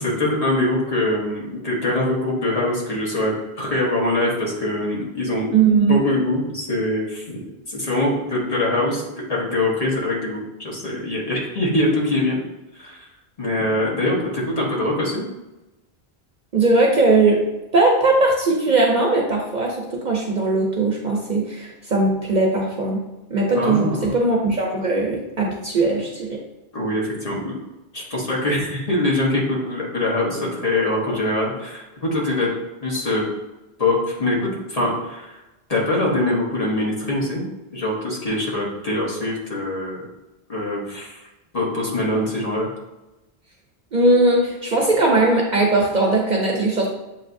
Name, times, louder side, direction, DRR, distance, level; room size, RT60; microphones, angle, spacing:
voice 1, 0.0-5.5 5.9-12.4 12.7-13.1 13.4-15.2 23.5-24.1 26.7-27.5 27.9-32.5 32.8-33.2 33.8-35.4 35.7-37.4 37.7-40.1 40.5-41.2 41.5-42.7, left 1 dB, 35° left, -4 dB, 1.1 m, -23 dB
voice 2, 5.5-6.0 16.5-17.4 17.7-23.0 23.3-26.4 43.9-46.9, right 3 dB, 50° right, -1 dB, 0.7 m, -19 dB
7.3 x 2.7 x 2.5 m, 1.0 s
omnidirectional pair, 1.1 m